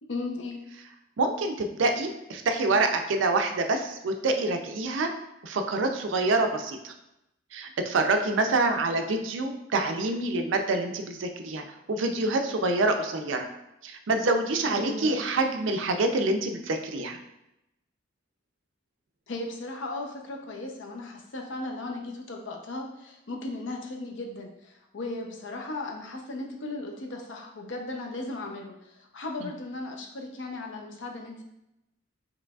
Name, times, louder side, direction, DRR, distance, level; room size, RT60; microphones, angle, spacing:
voice 1, 0.0-0.6 14.7-15.2 19.3-31.4, left 2 dB, 70° left, 2 dB, 0.6 m, -36 dB
voice 2, 1.2-5.1 5.4-6.9 7.5-11.6 11.9-13.5 13.8-17.2 29.4-29.5, right 2 dB, 75° right, 5 dB, 0.4 m, -26 dB
4.8 x 3.1 x 2.3 m, 0.88 s
head